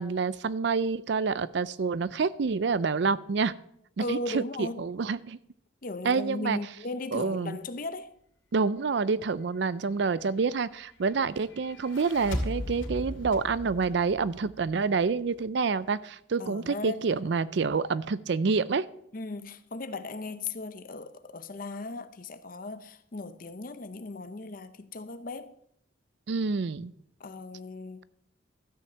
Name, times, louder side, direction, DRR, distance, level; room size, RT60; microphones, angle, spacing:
voice 1, 0.0-3.5 4.0-5.4 6.0-6.6 7.1-7.6 8.5-18.8 26.3-26.9, right 4 dB, 60° right, 0.4 m, -28 dB
voice 2, 4.0-4.8 5.8-8.1 16.4-17.1 19.1-25.6 27.2-28.0, left 2 dB, 45° left, 0.7 m, -37 dB
sound 1, 11.7-15.1, left 1 dB, 75° left, 2.4 m, -36 dB
13.0 x 5.6 x 7.4 m
head